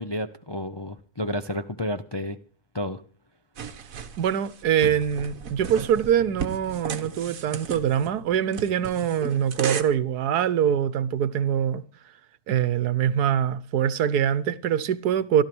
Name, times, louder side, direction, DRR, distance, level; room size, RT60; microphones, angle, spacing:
voice 1, 0.0-2.4 2.7-3.0, left 1 dB, 30° left, 0.5 m, -31 dB
sound 1, 3.6-9.8, right 7 dB, 60° right, 1.6 m, -35 dB
voice 2, 4.2-11.8 12.5-15.4, right 9 dB, 80° right, 1.4 m, -24 dB
16.0 x 12.5 x 6.1 m
omnidirectional pair, 1.7 m